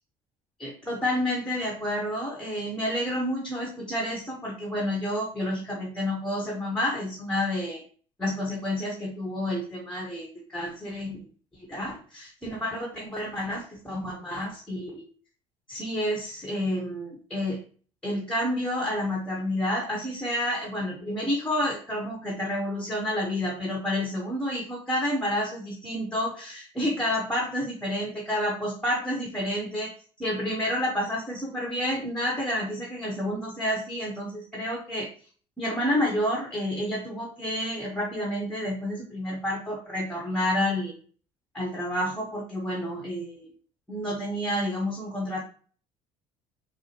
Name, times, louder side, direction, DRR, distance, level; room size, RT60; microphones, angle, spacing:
voice 1, 0.6-7.8 8.2-11.2 11.7-15.1 15.7-17.6 18.0-29.9 30.2-35.1 35.6-40.9 41.5-43.5 43.9-45.4, left 1 dB, 5° left, -1 dB, 1.2 m, -29 dB
4.6 x 2.1 x 3.0 m, 0.41 s
hypercardioid pair, 65°, 16 cm